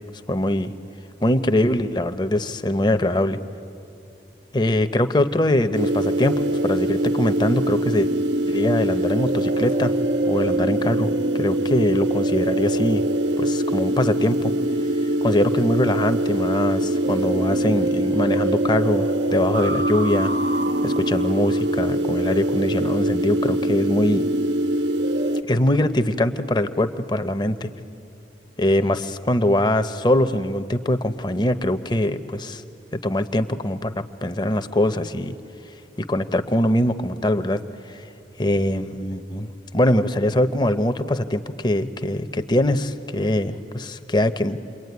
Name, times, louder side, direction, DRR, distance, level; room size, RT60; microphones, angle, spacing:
voice 1, 0.3-0.7 1.2-3.4 4.5-8.1 8.5-10.0 10.2-13.0 13.4-14.5 15.2-20.3 20.8-24.3 25.5-27.7 28.6-32.6 32.9-35.3 36.0-37.6 37.9-38.1 38.4-44.6, left 1 dB, 25° left, 10 dB, 0.8 m, -22 dB
sound 1, 5.7-25.4, right 1 dB, 85° right, 0.8 m, -23 dB
28.5 x 22.0 x 9.5 m, 2.7 s
head